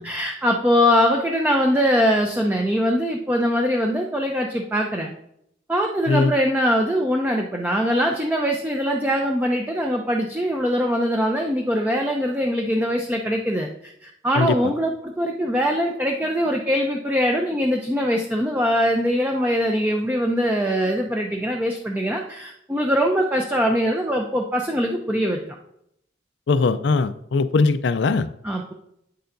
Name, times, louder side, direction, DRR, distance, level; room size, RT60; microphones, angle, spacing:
voice 1, 0.0-5.1 5.7-25.4 28.4-28.7, equal, 10° right, 1 dB, 0.5 m, -22 dB
voice 2, 26.5-28.3, left 4 dB, 85° left, 12 dB, 0.4 m, -20 dB
8.7 x 6.8 x 2.6 m, 0.75 s
head